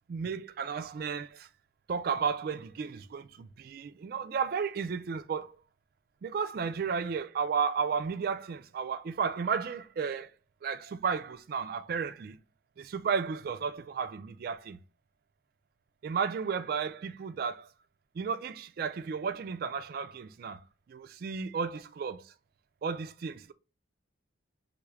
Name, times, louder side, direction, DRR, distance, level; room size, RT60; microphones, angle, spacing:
voice 1, 0.1-1.5 1.9-5.6 6.2-10.3 10.6-12.4 12.8-14.8 16.0-17.7 18.1-20.6 20.9-22.3 22.8-23.5, right 6 dB, 50° right, 0.3 m, -33 dB
3.4 x 2.4 x 3.1 m
head